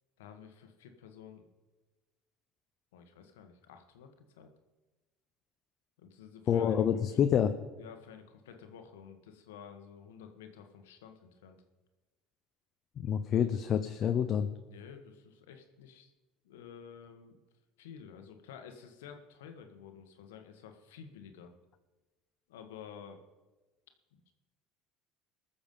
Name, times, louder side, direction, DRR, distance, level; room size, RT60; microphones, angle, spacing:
voice 1, 0.2-1.4 2.9-4.5 6.0-7.2 7.8-11.6 14.7-16.1 16.4-17.4 17.8-21.5 22.5-23.2 24.1-24.3, left 7 dB, 90° left, 6 dB, 1.4 m, -51 dB
voice 2, 6.5-7.5 13.0-14.5, left 8 dB, 50° left, 8 dB, 0.7 m, -27 dB
19.5 x 7.0 x 5.4 m, 1.2 s
supercardioid pair, 90°, 0 cm